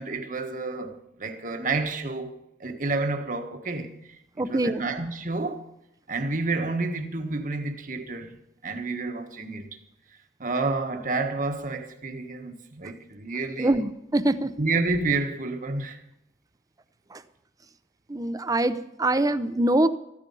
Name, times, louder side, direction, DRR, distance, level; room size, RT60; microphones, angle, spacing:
voice 1, 0.0-3.9 4.4-5.7 6.1-8.4 8.6-9.7 10.4-13.8 14.6-16.0, right 3 dB, 50° right, 1.5 m, -29 dB
voice 2, 4.4-4.9 13.6-14.5 17.1-17.2 18.1-19.9, right 1 dB, 20° right, 0.7 m, -24 dB
15.0 x 13.5 x 5.5 m
head